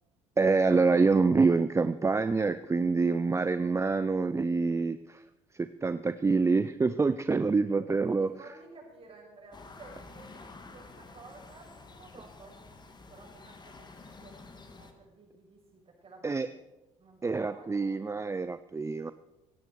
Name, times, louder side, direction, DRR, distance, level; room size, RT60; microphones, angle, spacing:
voice 1, 0.4-5.2 5.5-8.3 16.2-16.5 17.2-19.1, right 4 dB, 15° right, 13 dB, 0.6 m, -26 dB
voice 2, 8.0-16.6 17.0-18.6, right 3 dB, 35° right, 0 dB, 6.8 m, -54 dB
sound 1, 9.5-14.9, left 3 dB, 25° left, 2.3 m, -50 dB
17.0 x 16.0 x 4.8 m, 0.98 s
figure-of-eight pair, 60°, 17 cm